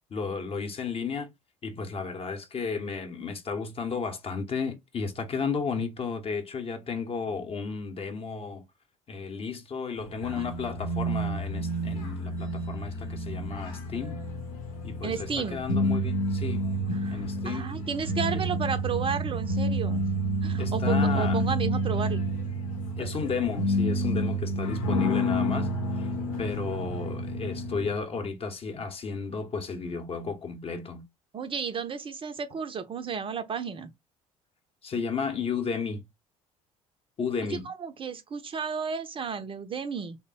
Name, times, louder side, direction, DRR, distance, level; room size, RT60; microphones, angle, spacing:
voice 1, 0.1-1.3 1.6-8.6 9.1-14.2 14.8-16.7 17.1-17.7 18.3-18.4 20.6-21.4 23.0-26.1 26.4-31.0 34.8-36.0 37.2-37.7, left 5 dB, 35° left, 0.8 m, -33 dB
sound 1, 10.1-27.9, equal, 75° left, 0.8 m, -29 dB
voice 2, 15.0-15.6 16.9-20.0 20.4-22.2 23.0-23.1 31.3-33.9 37.5-40.2, right 6 dB, 30° right, 0.5 m, -33 dB
3.3 x 2.1 x 3.8 m
figure-of-eight pair, 60°, 18 cm